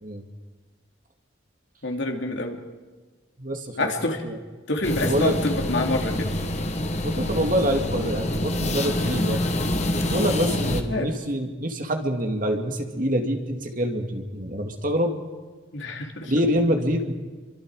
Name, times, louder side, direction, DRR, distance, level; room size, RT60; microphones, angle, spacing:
voice 1, 1.8-2.6 3.8-4.2 4.7-6.3 10.9-11.1 15.7-16.3, left 2 dB, 70° left, 2 dB, 2.9 m, -27 dB
voice 2, 3.4-3.9 4.2-4.4 5.0-5.3 7.0-9.4 10.0-15.2 16.2-17.1, equal, 45° right, 4 dB, 2.2 m, -26 dB
sound 1, 4.8-10.8, left 1 dB, 35° left, 1.6 m, -26 dB
28.0 x 24.5 x 4.8 m, 1.4 s
head